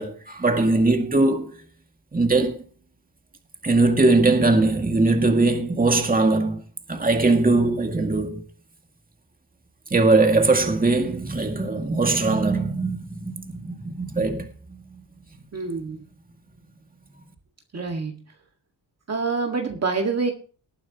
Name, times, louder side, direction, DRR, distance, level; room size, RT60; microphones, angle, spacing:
voice 1, 0.0-1.5 2.1-2.6 3.6-6.6 6.9-8.4 9.9-14.5, right 3 dB, 20° right, 2.2 m, -20 dB
voice 2, 15.5-16.0 17.7-18.2 19.1-20.3, right 4 dB, 40° right, 1.9 m, -26 dB
19.5 x 9.3 x 2.9 m
wide cardioid pair, 115°, 41 cm